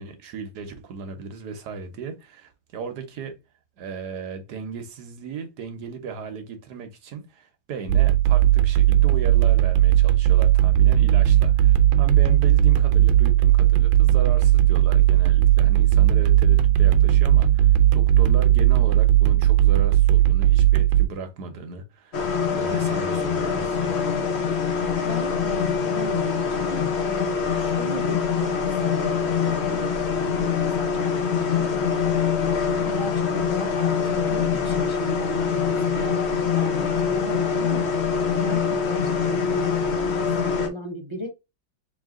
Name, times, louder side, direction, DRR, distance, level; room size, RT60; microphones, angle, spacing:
voice 1, 0.0-3.4 3.8-24.1, right 5 dB, 60° right, 1.3 m, -36 dB
sound 1, 7.9-21.0, right 12 dB, 80° right, 1.4 m, -17 dB
sound 2, 22.1-40.7, left 6 dB, 50° left, 0.8 m, -24 dB
voice 2, 25.0-31.8 32.4-37.9 38.3-41.3, right 1 dB, 20° right, 0.7 m, -36 dB
3.5 x 3.2 x 3.6 m
omnidirectional pair, 2.1 m